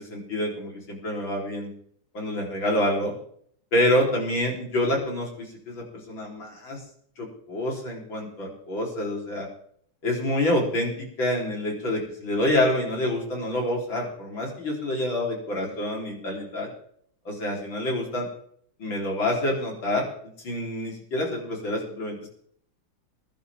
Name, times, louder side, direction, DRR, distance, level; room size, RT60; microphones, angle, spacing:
voice 1, 0.0-1.7 2.1-3.1 3.7-6.8 7.2-9.5 10.0-16.7 17.3-18.3 18.8-20.1 20.4-22.3, left 1 dB, 65° left, -1 dB, 4.6 m, -27 dB
22.0 x 11.0 x 3.6 m, 0.65 s
omnidirectional pair, 2.3 m